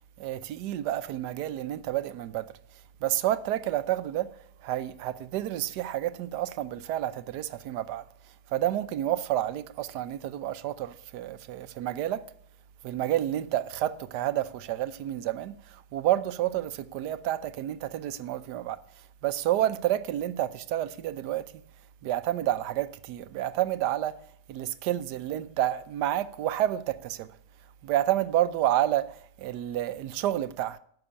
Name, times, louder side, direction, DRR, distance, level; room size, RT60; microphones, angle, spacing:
voice 1, 0.2-2.5 3.0-4.3 4.6-8.0 8.5-12.2 12.8-15.6 15.9-18.8 19.2-21.5 22.0-24.1 24.5-27.3 27.8-30.8, right 13 dB, 70° right, 1.2 m, -29 dB
13.5 x 6.3 x 8.7 m
omnidirectional pair, 2.0 m